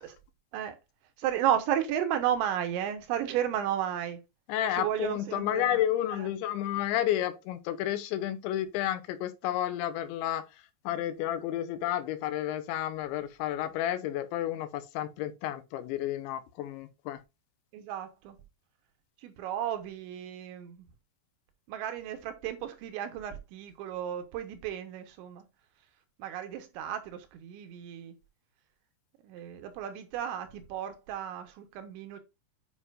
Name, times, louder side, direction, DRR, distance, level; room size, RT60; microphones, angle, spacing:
voice 1, 1.2-4.2 4.7-5.8 6.2-6.3 17.7-18.4 19.2-20.9 21.7-25.4 26.2-28.1 29.2-32.2, right 10 dB, 80° right, 3.3 m, -33 dB
voice 2, 4.5-17.2, left 12 dB, 85° left, 3.1 m, -31 dB
9.6 x 5.5 x 2.5 m
omnidirectional pair, 5.3 m